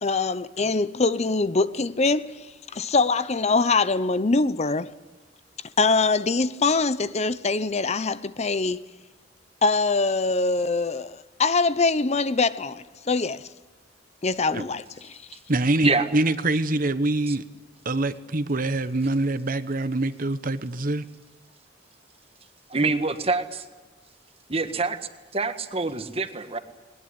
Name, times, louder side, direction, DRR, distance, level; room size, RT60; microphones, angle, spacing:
voice 1, 0.0-2.5 2.7-4.9 5.8-8.8 9.6-13.5 14.2-14.8 15.1-15.2, left 3 dB, 35° left, 0.7 m, -23 dB
voice 2, 15.5-17.5 17.8-21.1, right 2 dB, 50° right, 1.1 m, -25 dB
voice 3, 22.7-23.6 24.5-25.0 25.3-26.6, right 3 dB, 30° right, 1.7 m, -25 dB
20.5 x 20.5 x 9.7 m
head